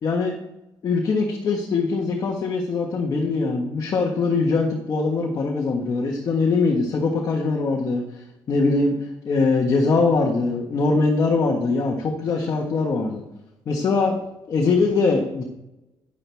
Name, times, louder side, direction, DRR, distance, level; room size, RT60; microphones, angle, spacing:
voice 1, 0.0-0.4 0.8-9.0 9.2-13.2 13.7-14.1 14.5-15.4, left 3 dB, 45° left, 0 dB, 1.5 m, -22 dB
11.0 x 10.0 x 3.5 m, 0.90 s
cardioid pair, 150°, 8 cm